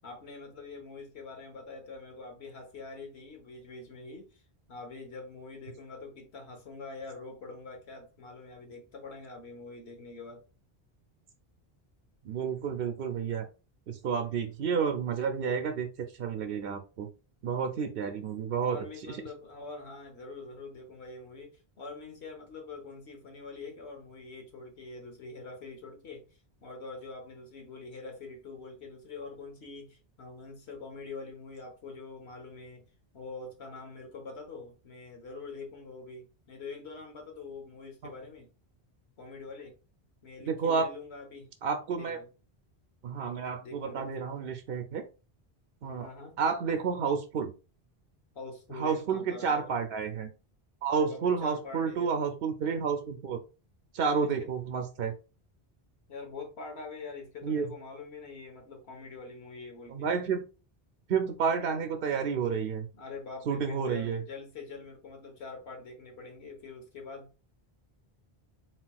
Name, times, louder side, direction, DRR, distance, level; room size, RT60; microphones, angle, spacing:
voice 1, 0.0-4.4 4.7-10.4 18.6-32.8 33.1-38.5 39.2-39.8 40.2-41.5 42.0-42.3 43.6-44.1 46.0-46.4 48.3-49.7 50.9-52.1 54.0-54.3 56.1-60.1 62.9-67.3, left 3 dB, 90° left, 1.4 m, -44 dB
voice 2, 12.2-13.4 13.9-15.9 16.1-17.1 17.4-18.8 19.1-19.2 40.4-40.9 41.6-42.2 43.0-45.0 45.8-46.1 46.4-47.5 48.7-50.3 50.8-53.4 53.9-55.1 57.4-57.7 59.9-60.4 61.1-62.9 63.5-64.2, right 6 dB, 65° right, 0.7 m, -30 dB
4.3 x 3.8 x 2.3 m
omnidirectional pair, 1.1 m